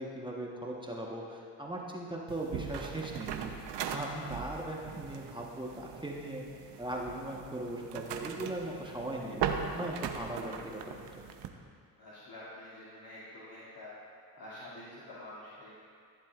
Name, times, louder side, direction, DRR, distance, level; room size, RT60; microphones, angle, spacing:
voice 1, 0.0-3.5 3.9-6.4 6.8-11.2, right 1 dB, 10° right, -2 dB, 1.2 m, -39 dB
sound 1, 2.3-11.5, right 7 dB, 65° right, 0.8 m, -39 dB
voice 2, 12.0-13.9 14.4-15.7, left 1 dB, 50° left, -10 dB, 2.5 m, -47 dB
14.5 x 7.4 x 2.5 m, 2.2 s
supercardioid pair, 60°, 45 cm